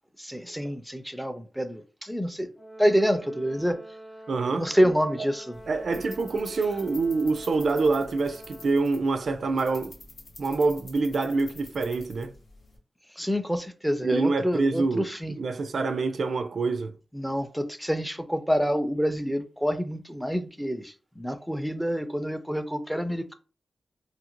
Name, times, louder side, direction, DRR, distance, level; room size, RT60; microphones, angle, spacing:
voice 1, 0.2-2.5 2.8-3.8 4.6-5.6 5.9-6.0 13.2-15.4 17.1-23.3, equal, ahead, 0.4 m, -27 dB
Brass instrument, 2.6-9.0, right 1 dB, 20° left, 0.9 m, -46 dB
voice 2, 4.3-4.6 5.7-10.0 10.4-12.4 14.0-15.1 15.4-17.0, right 3 dB, 65° right, 0.3 m, -26 dB
sound 1, 5.5-12.8, left 2 dB, 85° left, 0.9 m, -48 dB
2.7 x 2.5 x 2.9 m
wide cardioid pair, 95°, 0 cm